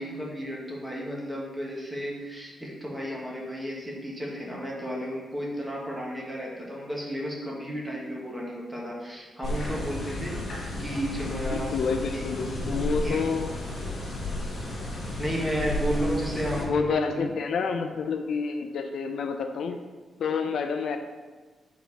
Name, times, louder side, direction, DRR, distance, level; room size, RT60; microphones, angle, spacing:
voice 1, 0.0-12.7 13.0-13.2 14.8-14.9 15.2-17.2, equal, 10° right, -4 dB, 1.4 m, -33 dB
sound 1, 9.4-16.6, left 1 dB, 45° left, 1.6 m, -32 dB
voice 2, 11.5-13.5 13.8-14.0 16.6-19.8 20.2-21.0, left 5 dB, 70° left, 6 dB, 0.4 m, -29 dB
4.8 x 4.5 x 5.4 m, 1.3 s
wide cardioid pair, 150°, 0 cm